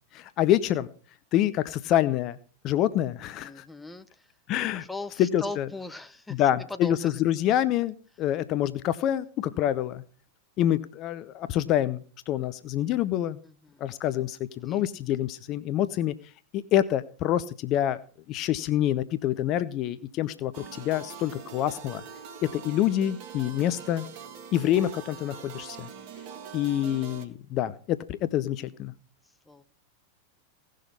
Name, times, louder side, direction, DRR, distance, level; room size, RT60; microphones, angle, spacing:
voice 1, 0.1-0.9 1.3-2.4 2.6-3.6 4.5-4.8 5.2-5.7 6.3-10.0 10.6-12.0 12.3-13.4 13.8-16.1 16.5-18.0 18.3-22.0 22.4-24.0 24.5-25.9 26.5-28.9, left 12 dB, 35° left, 15 dB, 0.7 m, -26 dB
voice 2, 3.4-4.3 4.7-7.2 13.4-13.8 14.6-14.8 29.5-29.6, left 2 dB, 5° left, 11 dB, 0.9 m, -39 dB
sound 1, 20.5-27.2, right 7 dB, 45° right, 1.8 m, -43 dB
17.0 x 6.5 x 5.5 m, 0.42 s
figure-of-eight pair, 90°, 0 cm